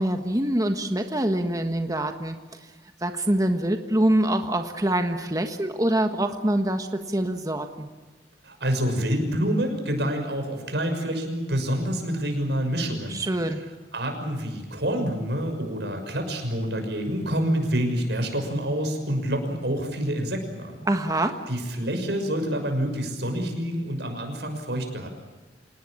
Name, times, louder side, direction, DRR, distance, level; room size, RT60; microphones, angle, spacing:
voice 1, 0.0-2.4 3.0-7.9 13.1-13.6 20.8-21.3, right 1 dB, 20° right, 6 dB, 1.4 m, -25 dB
voice 2, 8.4-13.6 13.9-20.8 21.5-25.1, equal, 75° right, 5 dB, 6.2 m, -27 dB
27.0 x 19.0 x 8.7 m, 1.3 s
head